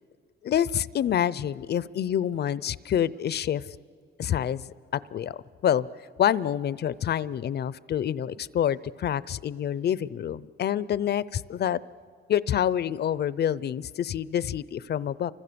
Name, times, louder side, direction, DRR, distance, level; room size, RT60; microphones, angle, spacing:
voice 1, 0.4-3.6 4.2-5.9 6.2-11.8 12.3-15.3, left 10 dB, 55° left, 19 dB, 0.7 m, -27 dB
30.0 x 25.5 x 7.0 m, 2.2 s
cardioid pair, 90°, 20 cm